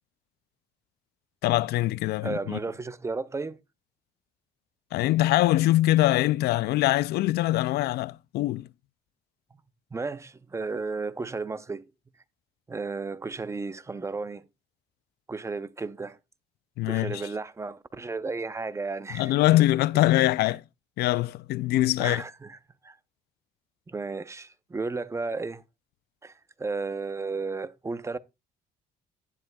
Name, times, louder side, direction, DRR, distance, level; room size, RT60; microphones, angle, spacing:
voice 1, 1.4-2.6 4.9-8.7 16.8-17.2 19.1-20.6 21.0-22.2, left 16 dB, 70° left, 0.4 m, -23 dB
voice 2, 2.2-3.6 9.9-11.8 12.7-14.4 15.3-16.2 16.9-19.4 22.0-22.6 22.8-23.0 23.9-25.6 26.2-26.3 26.6-28.2, right 3 dB, 15° right, 0.6 m, -33 dB
11.5 x 10.5 x 2.3 m
cardioid pair, 110°, 17 cm